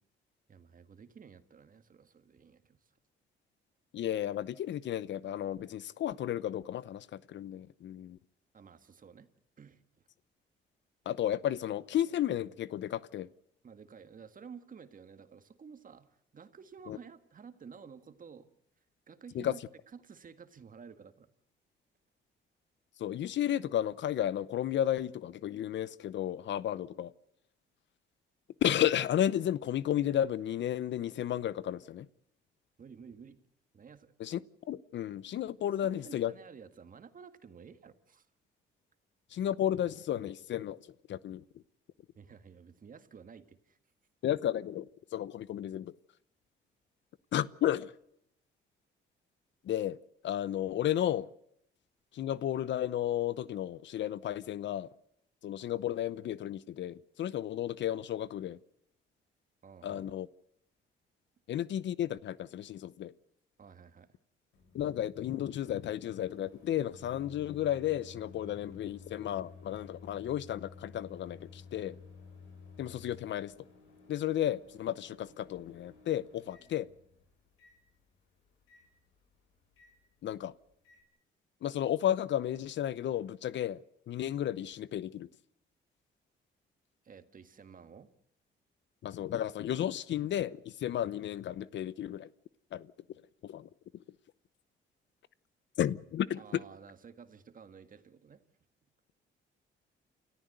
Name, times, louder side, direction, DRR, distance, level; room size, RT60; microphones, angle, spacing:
voice 1, 0.5-2.9 8.5-9.3 9.6-9.8 13.6-16.1 16.3-18.5 19.1-19.6 19.9-21.3 32.8-33.4 33.7-34.1 35.8-38.3 42.2-43.8 59.6-60.1 63.6-64.2 87.0-88.1 96.4-98.4, right 6 dB, 45° right, 1.9 m, -52 dB
voice 2, 3.9-8.2 11.1-13.3 16.9-17.0 19.3-19.5 23.0-27.1 28.6-32.1 34.2-34.4 34.7-36.3 39.3-40.8 41.1-41.4 44.2-45.9 47.3-47.9 49.6-50.0 50.2-51.3 52.1-54.9 55.4-58.6 59.8-60.3 61.5-63.1 64.7-72.0 72.8-73.5 74.1-76.9 80.2-80.5 81.6-85.3 89.0-92.3 92.7-92.9 93.4-93.7 95.8-96.6, left 11 dB, 65° left, 0.8 m, -33 dB
Microwave oven, 64.5-81.0, left 5 dB, 90° left, 6.2 m, -54 dB
29.0 x 14.0 x 8.0 m
cardioid pair, 90°, 20 cm